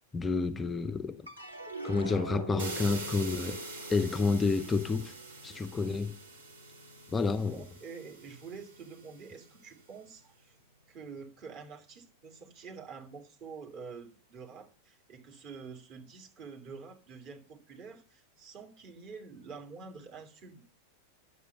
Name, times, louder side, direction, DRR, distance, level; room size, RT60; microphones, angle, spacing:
voice 1, 0.1-1.3 1.8-3.6 3.9-5.1 5.4-6.2 7.1-7.6, left 4 dB, 15° left, 0.5 m, -29 dB
sound 1, 1.3-7.7 8.1-8.8, right 2 dB, 85° right, 1.3 m, -44 dB
sound 2, 2.6-9.4, right 2 dB, 65° right, 2.0 m, -45 dB
voice 2, 7.1-10.6 10.9-20.6, right 5 dB, 40° right, 2.8 m, -47 dB
11.0 x 8.0 x 6.6 m
figure-of-eight pair, 90°, 0 cm